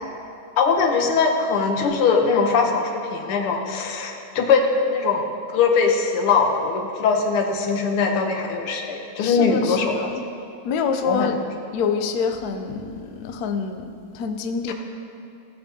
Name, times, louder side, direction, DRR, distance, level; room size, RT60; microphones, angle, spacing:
voice 1, 0.6-5.2 5.5-10.1 11.0-11.4 14.7-14.8, left 5 dB, 90° left, 3 dB, 1.8 m, -21 dB
voice 2, 9.2-10.1 10.6-11.4 11.7-14.7, left 5 dB, 75° left, 6 dB, 0.9 m, -26 dB
16.0 x 6.9 x 2.8 m, 2.7 s
omnidirectional pair, 2.3 m